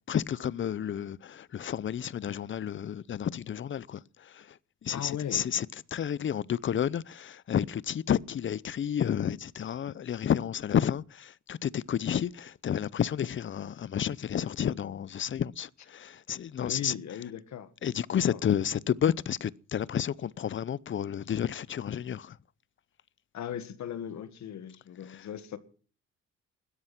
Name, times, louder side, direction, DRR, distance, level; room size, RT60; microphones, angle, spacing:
voice 1, 0.1-4.6 4.8-17.0 17.8-22.4 25.1-25.3, left 9 dB, 40° left, 0.6 m, -31 dB
voice 2, 4.9-5.5 16.6-17.7 18.2-18.4 23.3-25.6, left 9 dB, 65° left, 1.8 m, -38 dB
16.5 x 13.0 x 6.0 m
cardioid pair, 90°, 30 cm